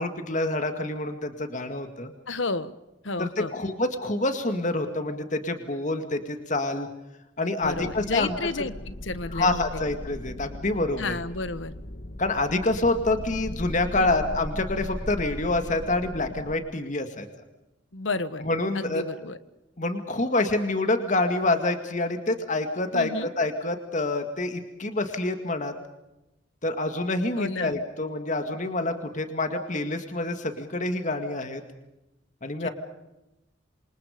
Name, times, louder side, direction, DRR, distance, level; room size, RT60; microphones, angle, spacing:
voice 1, 0.0-2.1 3.2-6.9 7.4-8.3 9.3-11.1 12.2-17.3 18.4-19.0 19.8-25.7 26.6-31.6 32.4-32.7, left 2 dB, 40° left, 7 dB, 2.1 m, -27 dB
voice 2, 2.3-2.7 3.0-3.5 7.6-9.6 11.0-11.7 14.0-14.1 17.9-18.4 18.7-19.4 22.9-23.3 27.4-27.7 32.6-32.7, left 3 dB, 85° left, 13 dB, 1.4 m, -31 dB
sound 1, 7.6-16.5, left 1 dB, 60° left, 2.0 m, -38 dB
27.5 x 27.0 x 5.2 m, 0.92 s
head